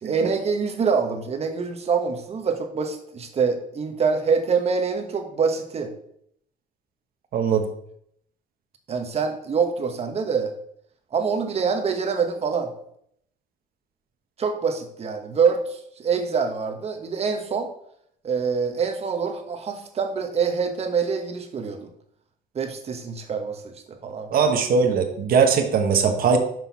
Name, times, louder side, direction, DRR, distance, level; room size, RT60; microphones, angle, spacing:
voice 1, 0.0-5.9 8.9-10.5 11.1-12.7 14.4-17.7 18.2-21.9 22.5-24.3, right 5 dB, 40° right, 5 dB, 1.4 m, -25 dB
voice 2, 7.3-7.7 24.3-26.4, right 5 dB, 60° right, 5 dB, 1.3 m, -20 dB
6.2 x 5.4 x 5.7 m, 0.69 s
cardioid pair, 110°, 17 cm